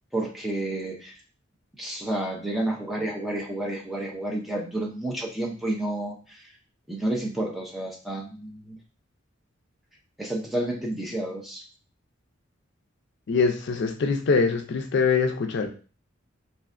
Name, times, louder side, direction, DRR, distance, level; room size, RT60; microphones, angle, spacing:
voice 1, 0.1-1.1 1.8-6.4 6.9-8.8 10.2-11.6, right 1 dB, ahead, -2 dB, 0.5 m, -30 dB
voice 2, 13.3-15.7, left 4 dB, 60° left, 4 dB, 0.4 m, -23 dB
3.2 x 2.5 x 2.4 m, 0.37 s
head